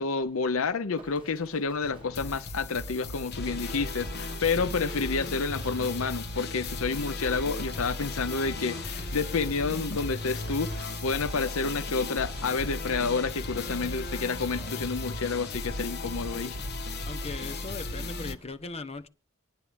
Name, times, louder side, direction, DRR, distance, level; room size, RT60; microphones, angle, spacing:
voice 1, 0.0-16.6, left 4 dB, 70° left, 0.7 m, -29 dB
Livestock farm animals working animals, 0.9-18.5, right 1 dB, 25° right, 6.7 m, -54 dB
sound 1, 1.8-18.4, left 2 dB, 55° left, 1.1 m, -36 dB
sound 2, 3.2-17.7, right 2 dB, 50° right, 7.3 m, -52 dB
voice 2, 17.1-19.1, left 3 dB, 30° left, 0.9 m, -39 dB
25.0 x 9.9 x 3.4 m
head